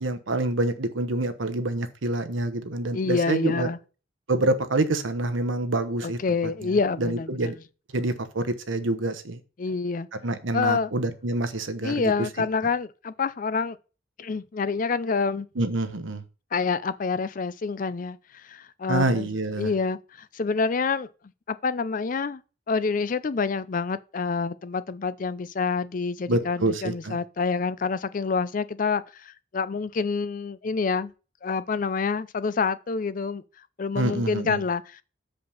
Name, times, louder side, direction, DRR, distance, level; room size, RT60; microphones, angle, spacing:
voice 1, 0.0-3.7 4.3-6.7 7.0-7.6 7.9-9.4 10.2-12.1 12.4-12.5 15.6-16.2 18.9-19.7 26.3-27.2 33.9-34.6, right 2 dB, 75° right, 1.0 m, -27 dB
voice 2, 2.9-3.8 6.0-7.5 9.6-10.1 10.5-10.9 11.8-13.8 14.2-15.5 16.5-19.3 19.6-21.1 21.5-22.4 22.7-31.1 31.4-33.4 33.8-35.0, left 4 dB, 40° left, 0.4 m, -27 dB
7.2 x 5.2 x 5.6 m
head